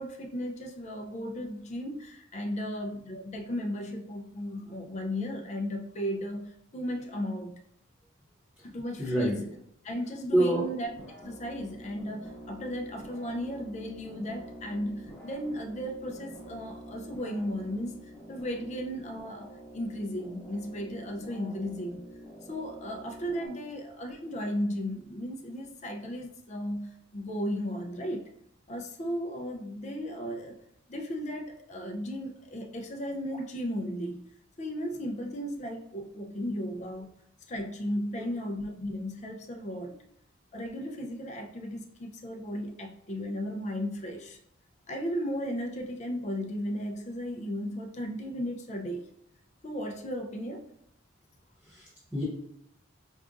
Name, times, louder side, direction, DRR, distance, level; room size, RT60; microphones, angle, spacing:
voice 1, 0.0-7.5 8.6-9.4 9.8-10.9 11.2-18.0 18.3-19.5 19.7-22.0 22.5-28.3 28.7-30.6 30.9-34.2 34.6-37.2 37.5-39.9 40.5-44.4 44.9-49.1 49.6-50.6, equal, 35° left, 4 dB, 0.4 m, -35 dB
voice 2, 9.0-9.3 10.3-10.7 38.2-38.3 39.9-40.0 51.6-52.2, right 1 dB, 10° right, -8 dB, 0.7 m, -27 dB
sound 1, 10.8-23.5, equal, 5° left, 1.2 m, -47 dB
4.6 x 2.5 x 2.4 m, 0.74 s
head